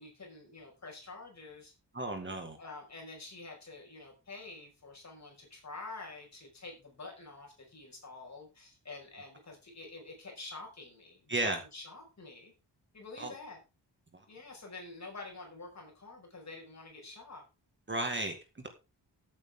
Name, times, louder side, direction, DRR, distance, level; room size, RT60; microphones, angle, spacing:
voice 1, 0.0-1.7 2.6-12.5 12.9-13.6 14.3-17.4, left 3 dB, 40° left, 0 dB, 5.6 m, -48 dB
voice 2, 1.9-2.6 11.3-11.6 13.2-13.3 17.9-18.7, right 2 dB, 25° right, 5 dB, 1.9 m, -34 dB
15.0 x 8.5 x 3.7 m, 0.29 s
wide cardioid pair, 165°, 42 cm